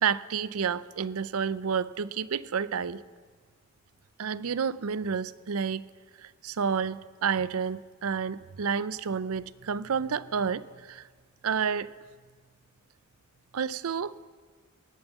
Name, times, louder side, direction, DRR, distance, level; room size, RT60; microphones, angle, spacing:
voice 1, 0.0-3.0 4.2-5.9 6.2-11.1 11.4-11.9 13.5-14.1, right 6 dB, 80° right, 17 dB, 0.5 m, -30 dB
18.5 x 9.0 x 8.1 m, 1.5 s
head